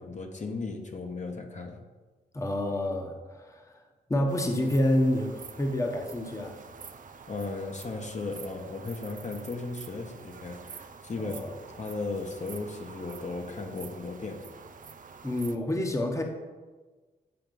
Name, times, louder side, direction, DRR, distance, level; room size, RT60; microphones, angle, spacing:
voice 1, 0.0-1.8 7.3-14.4, left 3 dB, 40° left, 3 dB, 1.0 m, -36 dB
voice 2, 2.3-3.8 4.1-6.6 11.2-11.5 15.2-16.2, left 1 dB, 15° left, 3 dB, 0.9 m, -28 dB
sound 1, 4.3-15.6, right 5 dB, 50° right, 0.6 m, -47 dB
7.9 x 4.5 x 5.2 m, 1.3 s
cardioid pair, 75°, 18 cm